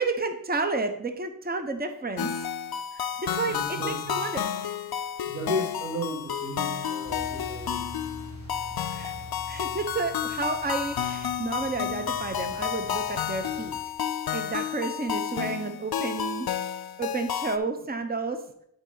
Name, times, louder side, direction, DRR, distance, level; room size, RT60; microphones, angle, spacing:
voice 1, 0.0-2.3 2.9-3.6 3.8-4.5 8.9-9.1 9.5-13.8 14.3-16.5 17.0-18.4, right 3 dB, 25° right, 0.8 m, -31 dB
sound 1, 2.2-17.6, left 9 dB, 75° left, 0.5 m, -31 dB
voice 2, 3.5-4.3 5.2-7.9, left 1 dB, 50° right, 1.9 m, -34 dB
sound 2, 7.0-13.8, equal, 65° right, 2.9 m, -44 dB
11.0 x 4.3 x 3.9 m
wide cardioid pair, 65°, 37 cm